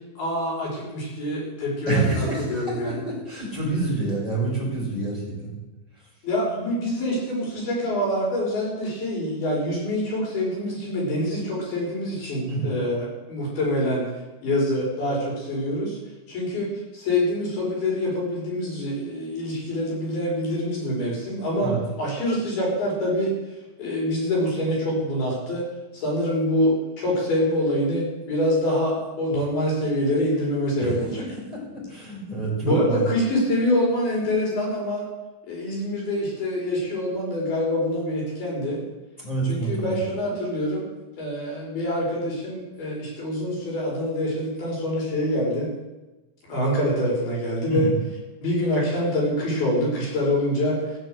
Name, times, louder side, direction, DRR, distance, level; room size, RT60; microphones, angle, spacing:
voice 1, 0.0-3.0 4.0-4.1 6.2-14.1 14.4-16.0 16.3-16.7 16.9-23.4 23.8-25.6 25.9-31.2 32.6-35.1 35.4-38.8 39.4-40.9 41.2-45.7 46.5-47.9 48.4-50.9, left 1 dB, 50° left, -4 dB, 6.9 m, -25 dB
voice 2, 1.9-5.6 12.5-12.7 21.6-21.8 30.8-30.9 31.4-33.1 39.2-40.0 47.7-48.0, right 3 dB, 10° left, -5 dB, 5.3 m, -27 dB
17.5 x 7.3 x 7.9 m, 1.1 s
omnidirectional pair, 5.5 m